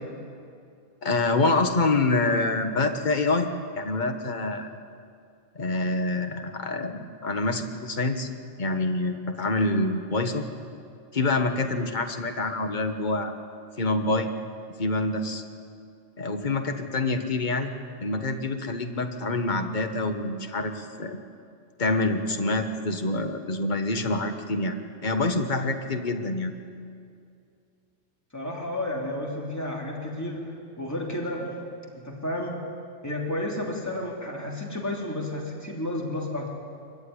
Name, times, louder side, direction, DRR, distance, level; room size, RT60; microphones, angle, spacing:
voice 1, 1.0-3.5 3.8-4.7 5.5-8.3 8.6-10.4 11.1-13.3 13.8-14.3 14.8-15.4 16.2-17.7 18.0-21.2 21.8-24.8 25.0-26.5, left 2 dB, 40° left, 6 dB, 1.5 m, -26 dB
voice 2, 28.3-31.6 32.0-32.6 33.0-36.5, left 1 dB, 15° left, -2 dB, 3.1 m, -31 dB
23.5 x 15.0 x 9.9 m, 2.4 s
omnidirectional pair, 1.2 m